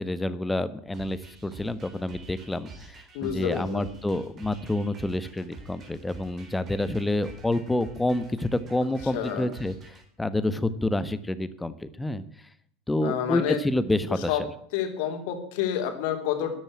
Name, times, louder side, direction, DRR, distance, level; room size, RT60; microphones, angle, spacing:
voice 1, 0.0-12.2 12.9-14.4, left 1 dB, 10° left, 14 dB, 1.4 m, -28 dB
sound 1, 0.9-10.0, right 2 dB, 35° right, 4.5 m, -48 dB
voice 2, 3.1-3.9 9.1-9.5 13.0-13.6 14.3-14.4 14.7-16.5, left 9 dB, 60° left, 5 dB, 3.3 m, -29 dB
13.0 x 11.0 x 8.6 m, 0.64 s
figure-of-eight pair, 80°, 0 cm